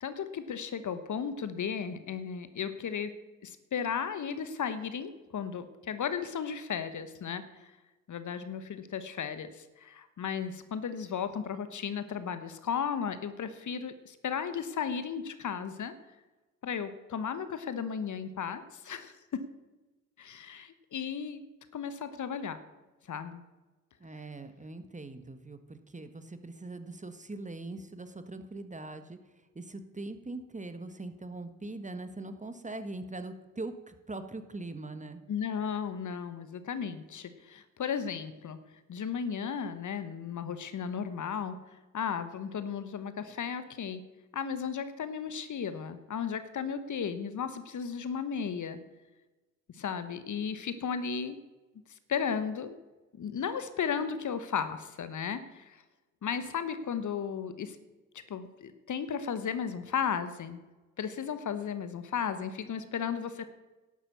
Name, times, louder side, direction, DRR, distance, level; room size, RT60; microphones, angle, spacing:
voice 1, 0.0-3.1 3.4-7.7 8.1-15.9 16.6-19.4 20.2-21.4 21.7-22.6 23.1-23.4 35.3-38.6 38.9-41.6 41.9-44.0 44.3-48.8 49.7-51.4 52.1-52.8 53.2-55.8 56.2-57.8 58.3-60.6 61.0-63.4, left 7 dB, 50° left, 11 dB, 1.2 m, -35 dB
voice 2, 24.0-29.2 29.5-35.2, right 2 dB, 20° right, 9 dB, 1.4 m, -41 dB
11.5 x 8.9 x 6.9 m, 1.1 s
hypercardioid pair, 45°, 38 cm